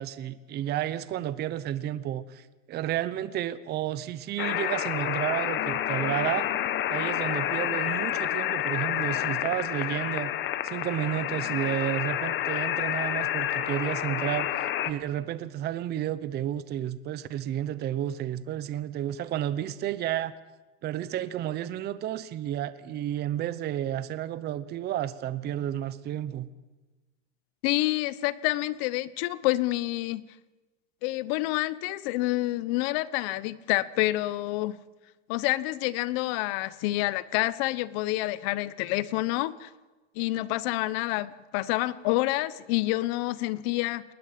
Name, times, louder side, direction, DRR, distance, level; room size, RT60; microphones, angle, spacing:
voice 1, 0.0-6.5 6.9-10.3 10.6-20.3 20.8-26.5, right 12 dB, 25° right, 15 dB, 0.8 m, -31 dB
sound 1, 4.4-14.9, left 12 dB, 30° left, 1.1 m, -29 dB
voice 2, 27.6-30.2 31.0-34.8 35.3-39.7 40.2-44.0, left 18 dB, 55° left, 18 dB, 1.1 m, -28 dB
20.5 x 19.5 x 7.6 m, 1.2 s
supercardioid pair, 155°, 37 cm